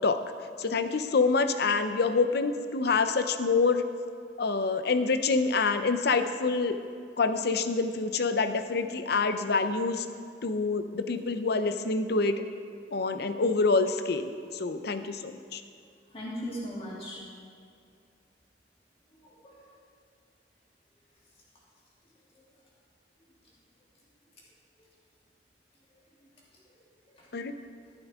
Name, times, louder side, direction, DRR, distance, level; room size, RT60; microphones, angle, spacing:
voice 1, 0.6-3.8 4.4-6.8 7.2-10.1 10.4-12.4 12.9-15.6 27.3-27.5, left 4 dB, 65° left, 9 dB, 0.7 m, -26 dB
voice 2, 16.1-17.2 19.1-19.6 22.4-22.5 26.7-27.4, equal, 35° left, -5 dB, 2.8 m, -40 dB
12.5 x 12.0 x 3.6 m, 2.4 s
head